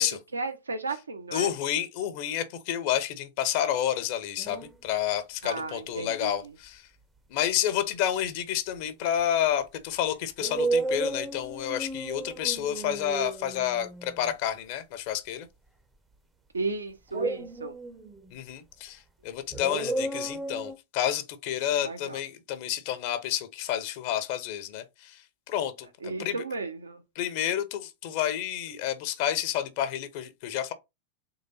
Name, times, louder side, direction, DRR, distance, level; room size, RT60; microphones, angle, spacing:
voice 1, 0.3-1.5 5.4-6.3 16.5-17.7 21.8-22.2 26.0-27.0, right 3 dB, 75° right, 0.9 m, -34 dB
voice 2, 1.3-6.9 7.3-15.5 18.3-25.2 25.5-25.9 26.2-26.4 27.2-30.7, left 11 dB, 45° left, 0.8 m, -30 dB
sound 1, 4.4-4.8 5.6-6.2 9.2-9.3 10.4-14.3 17.1-18.4 19.5-20.8, right 2 dB, 10° right, 0.6 m, -33 dB
3.9 x 3.3 x 4.1 m
figure-of-eight pair, 90°, 0 cm